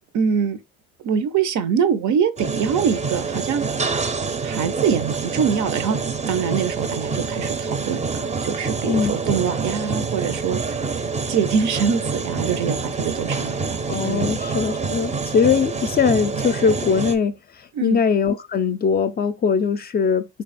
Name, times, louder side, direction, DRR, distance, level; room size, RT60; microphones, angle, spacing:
voice 1, 0.1-0.6 1.0-3.7 4.0-4.1 4.4-6.0 6.3-10.6 11.3-14.3 17.7-18.0, right 7 dB, 70° right, 0.6 m, -24 dB
sound 1, 2.4-17.2, right 4 dB, 25° right, 0.5 m, -26 dB
voice 2, 13.9-17.4 17.8-20.3, left 6 dB, 35° left, 0.4 m, -20 dB
3.3 x 2.3 x 4.0 m
cardioid pair, 90°, 30 cm